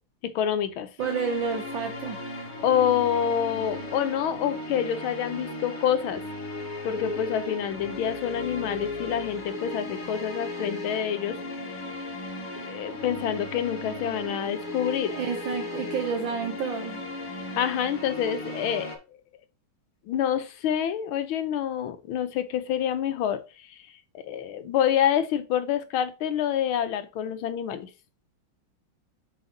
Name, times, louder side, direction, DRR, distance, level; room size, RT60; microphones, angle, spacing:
voice 1, 0.2-0.9 2.6-6.2 6.8-11.4 12.6-15.1 17.6-18.9 20.1-23.4 24.1-27.9, left 9 dB, 85° left, 10 dB, 1.6 m, -27 dB
sound 1, 1.0-19.0, left 2 dB, 30° left, 1.2 m, -36 dB
voice 2, 1.0-2.2 15.1-17.0, right 6 dB, 70° right, 3 dB, 1.5 m, -30 dB
7.1 x 3.6 x 3.9 m, 0.30 s
omnidirectional pair, 2.3 m